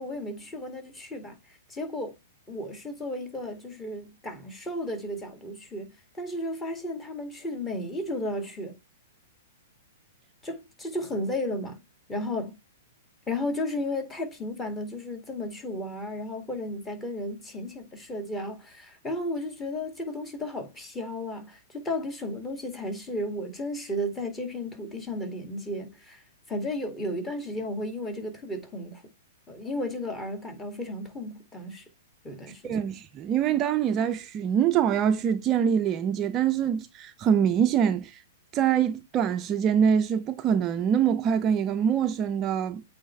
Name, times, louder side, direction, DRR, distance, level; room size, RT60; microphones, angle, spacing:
voice 1, 0.0-2.2 2.5-8.8 10.4-11.8 12.1-12.6 13.3-29.0 29.5-31.9 32.2-32.8, left 1 dB, 15° left, 2.2 m, -34 dB
voice 2, 32.6-38.2 38.5-42.8, right 8 dB, 30° right, 0.5 m, -24 dB
8.4 x 3.5 x 3.2 m
figure-of-eight pair, 110°, 0 cm